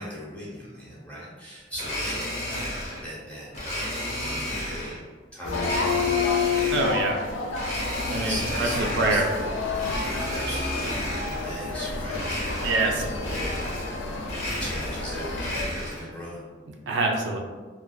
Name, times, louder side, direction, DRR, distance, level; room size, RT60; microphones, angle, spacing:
voice 1, 0.0-5.0 5.3-5.9 8.1-9.3 9.8-13.6 14.3-16.4, equal, 5° left, -7 dB, 0.8 m, -39 dB
Domestic sounds home sounds, 1.7-3.0 3.5-5.0 5.5-7.1 7.5-9.3 9.7-11.5 12.1-12.9 13.2-14.0 14.2-16.1, left 1 dB, 40° left, 0.7 m, -32 dB
sound 1, 5.4-15.7, left 4 dB, 90° left, 0.4 m, -30 dB
voice 2, 6.7-7.2 8.1-8.3 9.0-9.2 12.6-12.9 16.9-17.4, right 3 dB, 70° right, 1 dB, 0.3 m, -24 dB
2.5 x 2.2 x 2.2 m, 1.5 s
head